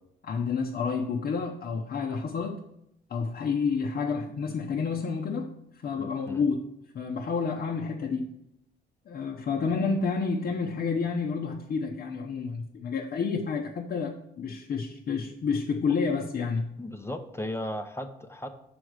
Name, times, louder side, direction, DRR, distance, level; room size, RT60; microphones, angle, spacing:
voice 1, 0.3-2.6 3.1-5.5 5.8-6.6 6.9-8.3 9.1-16.7, left 5 dB, 50° left, 0 dB, 0.8 m, -29 dB
voice 2, 6.0-6.4 16.8-18.5, left 1 dB, 15° left, 6 dB, 0.7 m, -36 dB
6.1 x 4.8 x 6.4 m, 0.80 s
cardioid pair, 90°, 20 cm